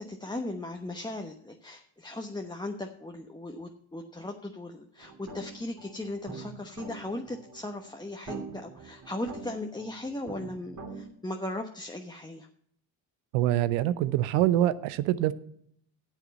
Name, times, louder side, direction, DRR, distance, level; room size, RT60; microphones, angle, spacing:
voice 1, 0.0-12.5, left 1 dB, 10° left, 2 dB, 1.1 m, -37 dB
sound 1, 5.0-11.0, right 3 dB, 40° right, 2.7 m, -44 dB
voice 2, 13.3-15.3, right 13 dB, 90° right, 16 dB, 0.7 m, -25 dB
9.6 x 7.3 x 6.9 m, 0.66 s
supercardioid pair, 65°, 47 cm